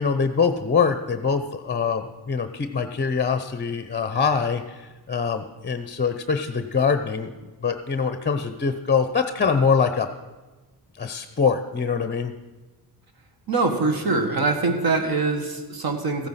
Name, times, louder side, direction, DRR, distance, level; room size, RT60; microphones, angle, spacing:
voice 1, 0.0-7.3 7.6-10.1 11.0-12.3, left 5 dB, 25° left, 8 dB, 0.6 m, -24 dB
voice 2, 13.5-16.3, right 3 dB, 65° right, 5 dB, 1.8 m, -23 dB
15.0 x 9.3 x 5.6 m, 1.2 s
wide cardioid pair, 125°, 40 cm